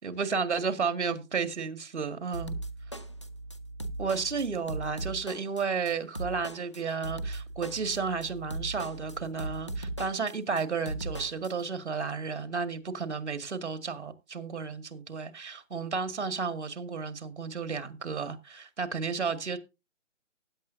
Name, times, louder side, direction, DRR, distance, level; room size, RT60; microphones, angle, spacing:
voice 1, 0.0-2.6 4.0-19.6, right 5 dB, 60° right, 2.0 m, -32 dB
sound 1, 2.3-11.5, right 2 dB, 25° left, 0.5 m, -38 dB
15.5 x 10.0 x 2.7 m
hypercardioid pair, 170°, 38 cm